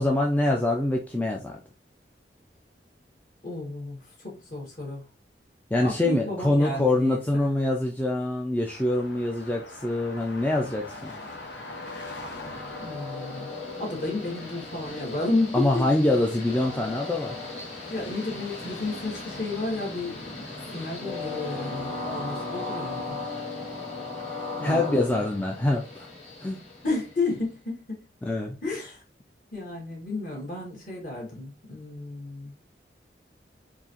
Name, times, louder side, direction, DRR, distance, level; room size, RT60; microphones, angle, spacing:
voice 1, 0.0-1.6 5.7-11.1 15.5-17.4 24.6-26.1 26.4-26.6 28.2-28.6, left 1 dB, 10° left, 1 dB, 0.4 m, -25 dB
voice 2, 3.4-5.0 5.8-7.5 12.8-13.5 13.8-15.9 17.9-20.4 20.7-23.2 24.6-25.2 26.8-28.0 28.6-29.0 29.5-32.5, left 2 dB, 50° left, -2 dB, 2.0 m, -32 dB
sound 1, 8.7-23.1, left 2 dB, 90° left, 0.9 m, -46 dB
Train, 10.7-27.4, left 3 dB, 35° left, 2.0 m, -37 dB
4.7 x 2.8 x 2.8 m, 0.30 s
head